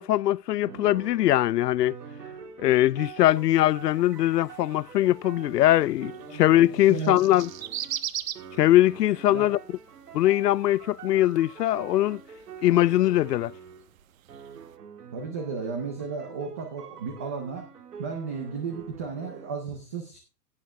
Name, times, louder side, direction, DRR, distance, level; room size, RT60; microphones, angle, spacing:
voice 1, 0.0-2.0 2.6-7.5 8.6-9.6 10.1-12.2 12.6-13.5, left 14 dB, 90° left, 0.5 m, -21 dB
sound 1, 0.6-7.1 7.4-8.1 8.4-13.9 14.3-19.5, right 7 dB, 75° right, 3.3 m, -45 dB
sound 2, 3.2-14.8, right 11 dB, 55° right, 1.1 m, -42 dB
voice 2, 6.1-7.2 9.3-9.5 15.1-17.6 18.0-20.2, right 5 dB, 10° right, 0.4 m, -34 dB
16.5 x 7.2 x 3.2 m
hypercardioid pair, 155°, 47 cm